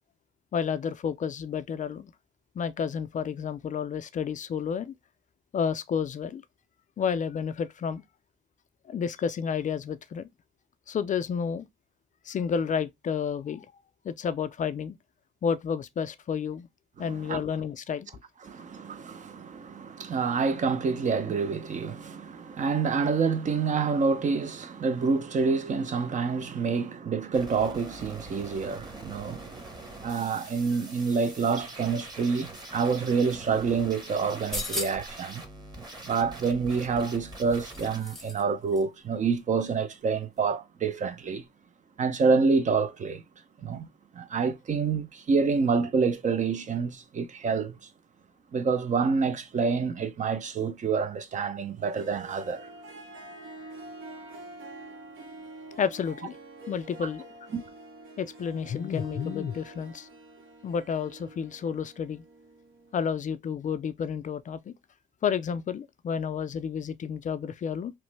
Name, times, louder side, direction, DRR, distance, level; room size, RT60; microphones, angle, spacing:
voice 1, 0.5-2.1 2.6-4.9 5.5-6.4 7.0-8.0 8.9-10.3 10.9-11.7 12.3-13.7 14.0-15.0 15.4-16.7 17.0-18.1 55.8-56.4 56.7-57.3 58.2-60.1 60.6-62.2 62.9-64.7 65.2-67.9, left 7 dB, 40° left, 0.4 m, -30 dB
voice 2, 17.0-17.4 18.4-29.6 30.0-35.4 36.0-41.5 42.0-43.2 43.6-43.9 44.1-47.8 48.5-52.7 57.5-57.6, right 5 dB, 40° right, 0.5 m, -27 dB
sound 1, 27.3-38.0, right 1 dB, 20° right, 0.9 m, -44 dB
sound 2, 34.3-35.2 36.7-38.4 38.7-38.8, left 2 dB, ahead, 0.7 m, -37 dB
Harp, 51.8-63.0, right 2 dB, 80° right, 0.9 m, -46 dB
3.0 x 2.0 x 3.2 m
cardioid pair, 90°, 20 cm